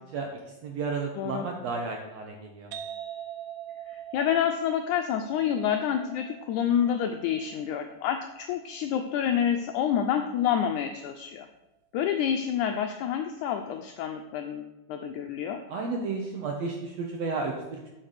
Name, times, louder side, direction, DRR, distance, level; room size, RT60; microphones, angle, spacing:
voice 1, 0.1-2.7 15.7-17.9, right 4 dB, 70° right, 1 dB, 1.6 m, -33 dB
sound 1, 2.7-10.2, right 10 dB, 90° right, 2.5 m, -44 dB
voice 2, 3.9-11.5 11.9-15.6, left 9 dB, 85° left, 5 dB, 1.7 m, -28 dB
7.7 x 5.7 x 6.6 m, 1.0 s
omnidirectional pair, 4.0 m